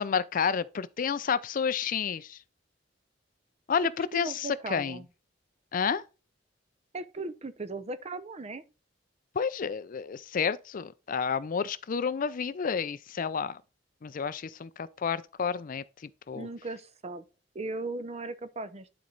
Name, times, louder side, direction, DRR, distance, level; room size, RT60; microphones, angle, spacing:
voice 1, 0.0-2.4 3.7-5.0 5.7-6.0 9.4-13.6 14.0-16.5, left 6 dB, 45° left, 0.4 m, -30 dB
voice 2, 4.1-5.1 6.9-8.6 16.4-17.2 17.5-19.0, right 2 dB, 35° right, 0.7 m, -37 dB
11.5 x 4.3 x 3.9 m
head